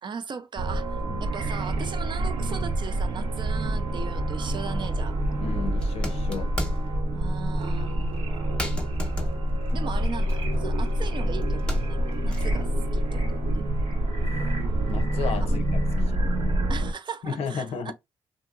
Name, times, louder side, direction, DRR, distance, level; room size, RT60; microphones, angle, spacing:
voice 1, 0.0-5.2 7.1-7.9 9.7-13.6 15.4-15.7 16.7-17.9, right 6 dB, 50° right, 0.5 m, -38 dB
sound 1, 0.5-16.9, right 1 dB, 80° right, 0.9 m, -26 dB
sound 2, 4.8-5.0 5.7-7.0 7.6-7.8 8.2-8.3 8.6-11.1 11.4-12.7, left 1 dB, 10° left, 0.9 m, -35 dB
voice 2, 5.4-6.5 14.9-15.8 16.1-16.3 17.2-17.9, left 6 dB, 75° left, 0.5 m, -33 dB
2.8 x 2.6 x 2.5 m
cardioid pair, 70°, 10 cm